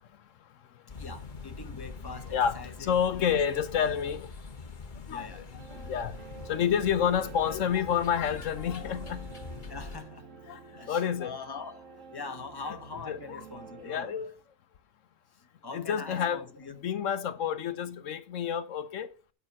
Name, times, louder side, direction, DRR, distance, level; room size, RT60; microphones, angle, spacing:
sound 1, 0.9-10.0, left 4 dB, 40° left, 1.3 m, -44 dB
voice 1, 1.0-3.4 3.8-3.9 5.1-5.5 8.9-9.0 9.7-10.3 10.8-14.2 15.6-16.8, left 4 dB, 20° left, 1.1 m, -43 dB
voice 2, 2.1-4.3 5.1-6.2 6.4-9.3 10.5-10.6 10.9-11.3 13.1-13.4 13.8-14.3 15.7-16.4 16.8-19.1, left 8 dB, 80° left, 1.1 m, -29 dB
sound 2, 5.6-14.1, right 5 dB, 80° right, 1.2 m, -48 dB
9.9 x 5.5 x 5.4 m
omnidirectional pair, 1.3 m